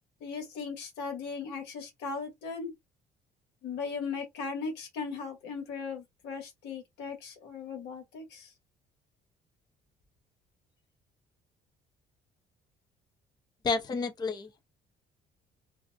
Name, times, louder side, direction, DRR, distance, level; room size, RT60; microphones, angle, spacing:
voice 1, 0.2-2.7 3.6-8.5, left 5 dB, 85° left, 1.2 m, -38 dB
voice 2, 13.6-14.6, left 4 dB, 25° left, 0.4 m, -31 dB
2.4 x 2.1 x 2.6 m
cardioid pair, 110°, 17 cm